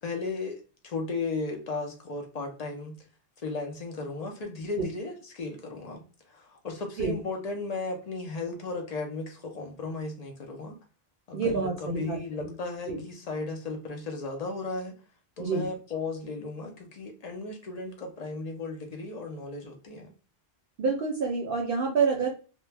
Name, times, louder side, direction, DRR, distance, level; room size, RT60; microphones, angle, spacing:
voice 1, 0.0-2.9 3.4-10.7 11.3-14.9 15.4-20.1, left 3 dB, 55° left, 2 dB, 0.4 m, -35 dB
voice 2, 11.3-12.5 12.9-13.0 15.4-15.7 20.8-22.3, right 4 dB, 60° right, 0 dB, 0.7 m, -28 dB
2.1 x 2.1 x 3.2 m, 0.36 s
omnidirectional pair, 1.2 m